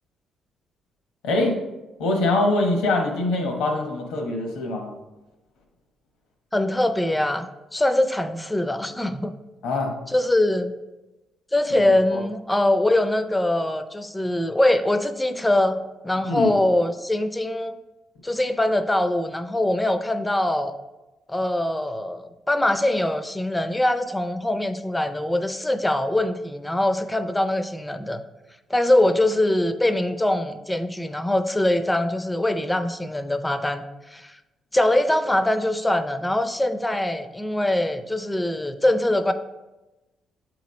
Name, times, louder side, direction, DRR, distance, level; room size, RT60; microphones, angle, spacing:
voice 1, 1.2-1.6 2.0-4.9 9.6-9.9 12.1-12.2 16.2-16.5, left 2 dB, 85° left, 2 dB, 1.1 m, -23 dB
voice 2, 6.5-9.3 10.1-10.7 11.5-15.8 16.0-17.8 18.2-20.7 21.3-28.2 28.7-33.8 34.1-34.3 34.7-39.3, left 1 dB, 10° left, 9 dB, 0.5 m, -23 dB
7.8 x 3.1 x 5.2 m, 1.0 s
cardioid pair, 90°, 0 cm